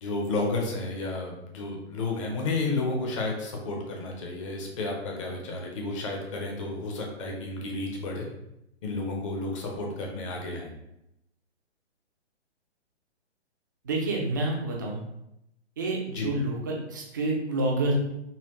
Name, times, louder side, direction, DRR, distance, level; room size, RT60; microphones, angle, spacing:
voice 1, 0.0-8.3 8.8-10.7 16.1-16.3, left 2 dB, 30° left, 0 dB, 0.7 m, -31 dB
voice 2, 13.8-15.0 15.8-17.9, right 2 dB, 20° right, -1 dB, 0.4 m, -28 dB
5.6 x 2.3 x 2.9 m, 0.84 s
figure-of-eight pair, 130°, 34 cm